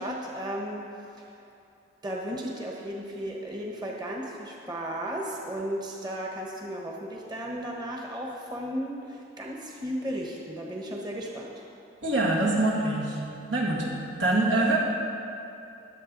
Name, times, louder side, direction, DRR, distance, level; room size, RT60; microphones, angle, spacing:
voice 1, 0.0-1.4 2.0-11.6, equal, 20° right, -1 dB, 1.1 m, -35 dB
voice 2, 12.0-14.8, right 2 dB, 80° right, -3 dB, 2.2 m, -25 dB
21.5 x 7.7 x 4.0 m, 2.7 s
head